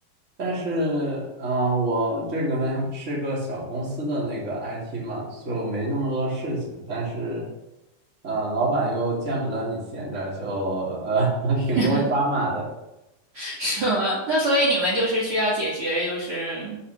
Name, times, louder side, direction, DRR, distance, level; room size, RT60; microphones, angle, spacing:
voice 1, 0.4-7.5 8.2-12.7, right 2 dB, 20° right, -5 dB, 2.7 m, -26 dB
voice 2, 13.3-16.8, right 1 dB, 40° right, -6 dB, 2.6 m, -24 dB
10.0 x 5.1 x 6.9 m, 0.95 s
omnidirectional pair, 4.3 m